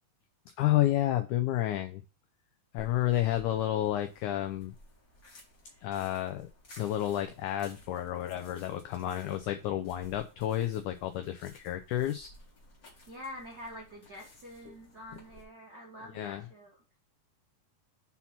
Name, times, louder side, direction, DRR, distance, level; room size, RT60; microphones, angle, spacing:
voice 1, 0.6-2.0 2.7-4.7 5.8-6.5 6.8-12.3 14.7-14.8 16.1-16.4, left 13 dB, 85° left, 7 dB, 1.7 m, -30 dB
sound 1, 2.8-15.4, left 1 dB, 35° left, 1.5 m, -56 dB
voice 2, 13.1-16.8, left 1 dB, 70° right, -2 dB, 0.9 m, -46 dB
5.7 x 4.2 x 5.7 m, 0.33 s
omnidirectional pair, 4.2 m